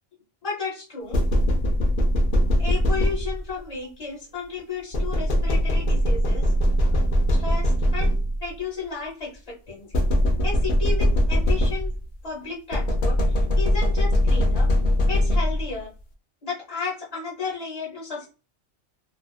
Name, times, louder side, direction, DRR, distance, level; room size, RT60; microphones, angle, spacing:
voice 1, 0.4-1.2 2.6-6.5 7.3-8.1 8.4-10.0 10.4-11.9 12.2-14.7 15.1-15.9 16.4-18.3, left 4 dB, 35° left, -3 dB, 1.0 m, -33 dB
sound 1, 1.1-3.6 4.9-8.5 9.9-12.1 12.7-15.8, equal, 55° left, 0.7 m, -21 dB
2.5 x 2.4 x 2.3 m, 0.33 s
omnidirectional pair, 1.2 m